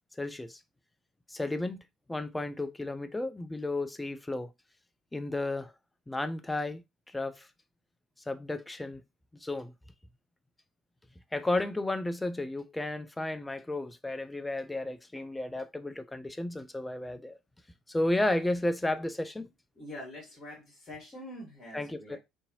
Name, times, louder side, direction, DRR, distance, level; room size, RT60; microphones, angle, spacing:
voice 1, 0.2-0.6 1.3-1.8 2.1-4.5 5.1-5.7 6.1-6.8 7.1-7.5 8.3-9.0 9.4-9.7 11.3-17.4 17.9-19.5 21.7-22.2, left 2 dB, 10° left, 0.3 m, -33 dB
voice 2, 19.8-22.2, left 1 dB, 30° left, 1.2 m, -45 dB
2.6 x 2.6 x 2.7 m
figure-of-eight pair, 55°, 0 cm